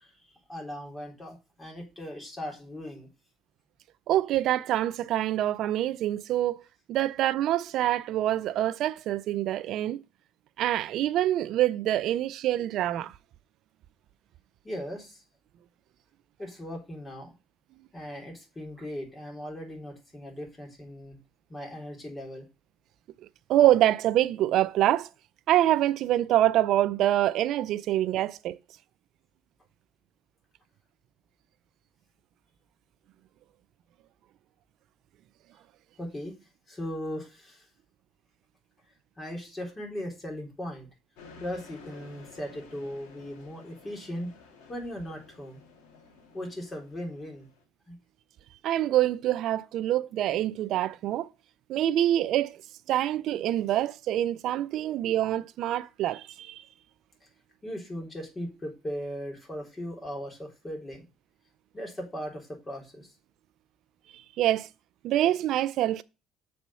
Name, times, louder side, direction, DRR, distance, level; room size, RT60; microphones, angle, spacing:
voice 1, 0.0-3.1 14.6-15.2 16.4-17.3 17.9-21.2 21.5-22.5 36.0-36.4 36.7-37.7 39.2-40.9 41.4-44.3 44.7-45.6 46.3-47.5 47.9-48.0 57.6-61.1 61.7-63.1, equal, 25° left, 3.6 m, -38 dB
voice 2, 4.1-6.6 6.9-10.0 10.6-13.1 23.5-25.1 25.5-28.6 48.6-51.3 51.7-52.6 52.9-56.6 64.4-64.7 65.0-66.0, right 13 dB, 70° right, 0.4 m, -25 dB
sound 1, 41.2-47.6, left 4 dB, 85° left, 2.0 m, -53 dB
7.0 x 4.3 x 5.5 m
supercardioid pair, 75°, 0 cm